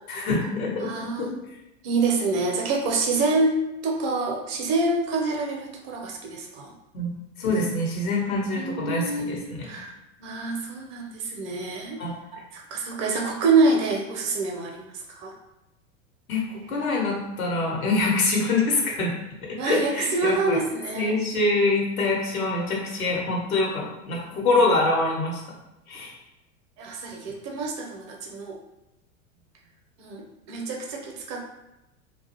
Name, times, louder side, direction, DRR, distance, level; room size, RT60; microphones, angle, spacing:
voice 1, 0.1-0.9 1.3-1.4 6.9-9.6 12.0-12.1 16.3-16.4 16.7-19.1 19.5-20.6 20.9-25.4 25.9-26.1, left 2 dB, 80° left, -2 dB, 0.9 m, -25 dB
voice 2, 0.8-1.4 1.8-3.6 3.8-6.7 8.5-9.9 10.2-12.0 12.5-15.3 19.6-21.1 26.8-28.6 30.0-31.5, right 3 dB, 40° right, 1 dB, 0.6 m, -26 dB
2.4 x 2.3 x 2.8 m, 0.97 s
hypercardioid pair, 90°, 41 cm